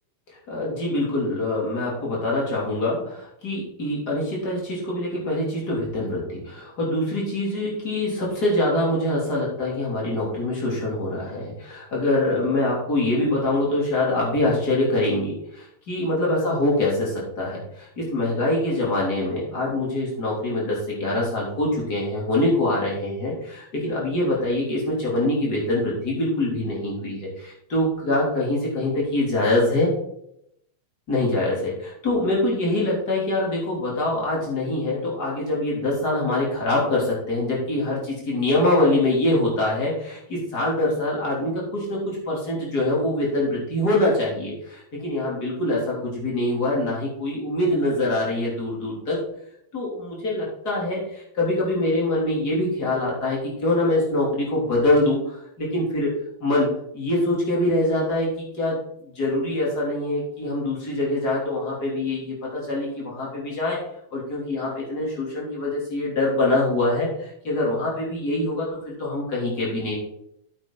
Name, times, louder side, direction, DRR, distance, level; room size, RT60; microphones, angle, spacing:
voice 1, 0.5-29.9 31.1-49.2 49.7-56.1 56.4-56.7 56.9-58.3 58.6-63.8 64.1-67.1 67.4-70.0, left 1 dB, 30° left, -4 dB, 3.5 m, -24 dB
9.3 x 8.7 x 3.9 m, 0.74 s
omnidirectional pair, 3.3 m